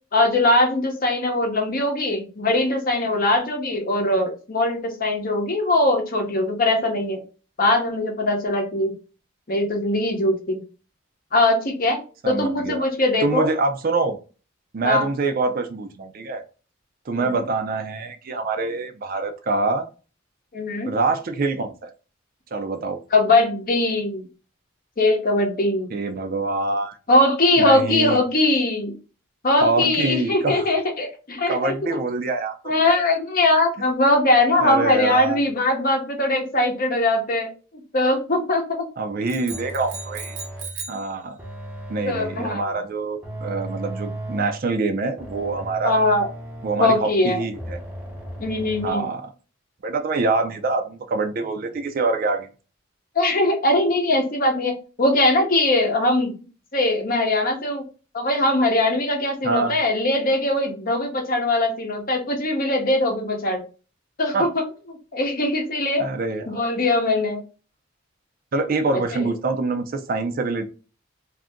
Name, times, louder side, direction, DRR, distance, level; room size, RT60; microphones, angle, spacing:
voice 1, 0.1-7.2 7.6-8.9 9.5-10.6 11.3-12.0 12.3-13.5 14.8-15.1 17.2-17.3 20.5-20.9 23.1-24.3 25.0-25.9 27.1-28.9 29.4-31.7 32.6-37.5 37.9-38.8 42.0-42.6 45.8-46.3 46.8-47.4 48.4-49.0 53.2-56.3 56.7-57.8 58.1-63.6 64.2-64.6 65.1-66.0 66.5-67.4 68.9-69.3, left 2 dB, 45° left, 3 dB, 0.8 m, -21 dB
voice 2, 12.2-12.9 13.2-14.2 14.7-16.4 17.1-19.9 20.9-21.9 22.5-23.0 25.9-27.0 27.6-28.2 29.6-30.7 31.5-32.6 32.9-33.0 34.6-35.4 39.0-40.4 40.9-41.4 41.9-46.0 46.6-47.8 48.8-49.2 49.8-52.5 59.4-59.8 64.3-64.5 66.0-66.6 68.5-70.6, right 3 dB, 45° right, 7 dB, 0.4 m, -25 dB
sound 1, 39.3-41.1, right 5 dB, 70° right, 0.8 m, -36 dB
sound 2, 39.5-40.8 41.4-42.7 43.2-44.7 45.2-47.1 47.5-48.9, right 1 dB, 10° right, 0.7 m, -36 dB
2.7 x 2.5 x 3.5 m, 0.35 s
head